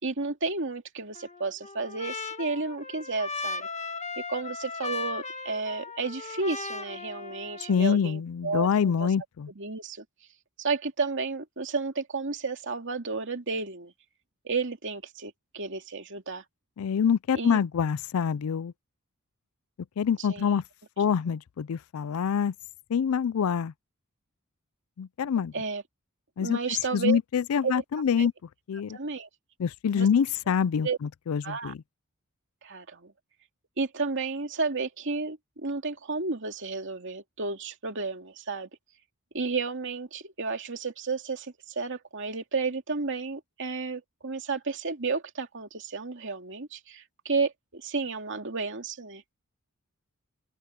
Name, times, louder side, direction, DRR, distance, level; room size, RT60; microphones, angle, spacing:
voice 1, 0.0-3.7 4.3-9.1 9.6-10.0 10.6-13.9 14.4-16.4 17.4-17.6 20.2-20.6 25.5-25.8 26.4-27.2 27.6-27.7 28.2-28.3 28.9-29.3 29.9-30.1 30.8-31.0 31.4-31.7 32.6-33.1 33.8-38.7 39.3-49.2, right 4 dB, 60° right, 2.6 m, -32 dB
Trumpet, 1.1-7.9, left 4 dB, 35° left, 1.7 m, -37 dB
voice 2, 7.7-9.5 16.8-18.7 20.0-20.6 21.0-22.5 22.9-23.7 25.0-25.5 26.4-26.6 26.9-28.3 28.7-29.0 29.6-31.8, left 7 dB, 85° left, 0.4 m, -26 dB
open air
head